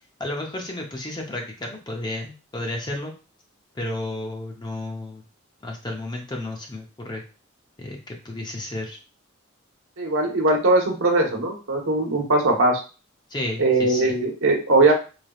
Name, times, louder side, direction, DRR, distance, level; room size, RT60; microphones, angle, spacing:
voice 1, 0.2-3.1 3.7-5.2 5.6-7.2 7.8-9.0 13.3-14.2, left 1 dB, 20° left, 1 dB, 0.6 m, -32 dB
voice 2, 10.0-12.8 13.6-14.9, right 2 dB, 80° right, 1 dB, 1.0 m, -20 dB
4.1 x 3.3 x 2.3 m, 0.33 s
head